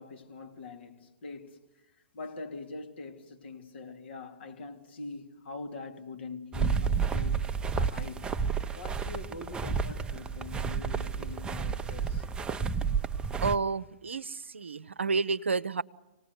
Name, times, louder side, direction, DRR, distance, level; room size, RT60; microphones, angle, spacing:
voice 1, 0.0-1.6 2.1-8.3 8.7-12.2, left 3 dB, 70° left, 2.5 m, -43 dB
sound 1, 6.5-13.6, right 5 dB, 15° right, 0.7 m, -31 dB
voice 2, 13.4-15.8, right 4 dB, 85° right, 0.7 m, -30 dB
26.0 x 18.5 x 8.0 m
hypercardioid pair, 120°, 6 cm